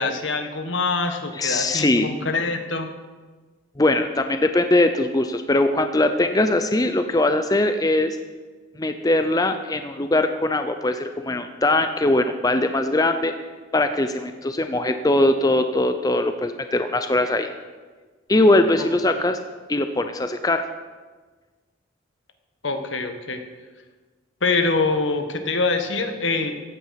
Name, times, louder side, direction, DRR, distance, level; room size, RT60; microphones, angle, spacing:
voice 1, 0.0-2.9 18.8-18.9 22.6-23.4 24.4-26.6, left 3 dB, 75° left, 7 dB, 1.5 m, -24 dB
voice 2, 1.3-2.1 3.8-8.2 8.8-13.3 13.7-17.5 18.3-19.4 19.7-20.6, left 2 dB, 20° left, 8 dB, 0.5 m, -21 dB
15.5 x 9.5 x 5.8 m, 1.4 s
head